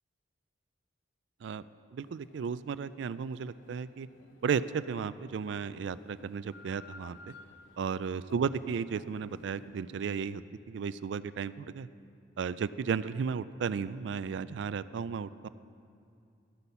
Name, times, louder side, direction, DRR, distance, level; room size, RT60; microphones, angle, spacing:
voice 1, 1.9-4.1 4.4-7.3 7.8-10.4 10.7-11.9 12.4-15.5, right 6 dB, 65° right, 16 dB, 0.3 m, -34 dB
sound 1, 2.0-10.4, left 3 dB, 80° left, 0.7 m, -55 dB
13.5 x 8.2 x 5.6 m, 2.5 s
head